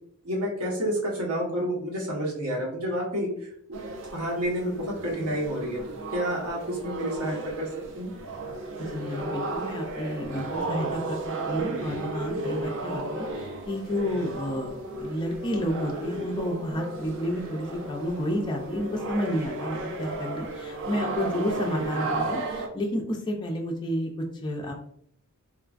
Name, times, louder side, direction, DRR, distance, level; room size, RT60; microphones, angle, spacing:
voice 1, 0.2-3.8 4.1-5.8 6.1-7.7 7.9-8.1, equal, 85° right, -2 dB, 1.0 m, -29 dB
sound 1, 3.7-22.7, right 2 dB, 55° right, 0.4 m, -34 dB
voice 2, 8.8-11.2 11.5-24.7, equal, 20° left, 0 dB, 0.3 m, -31 dB
3.1 x 2.3 x 2.4 m, 0.67 s
head